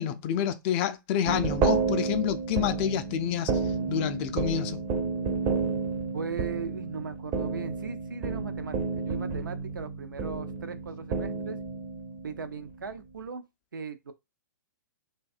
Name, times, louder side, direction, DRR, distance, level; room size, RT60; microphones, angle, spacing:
voice 1, 0.0-3.5 3.9-4.8, left 10 dB, 35° left, 0.3 m, -28 dB
sound 1, 1.2-12.8, right 5 dB, 30° right, 0.5 m, -31 dB
voice 2, 6.1-11.6 12.2-13.4 13.7-14.1, right 5 dB, 80° right, 0.5 m, -38 dB
2.6 x 2.2 x 2.4 m
hypercardioid pair, 120°, 11 cm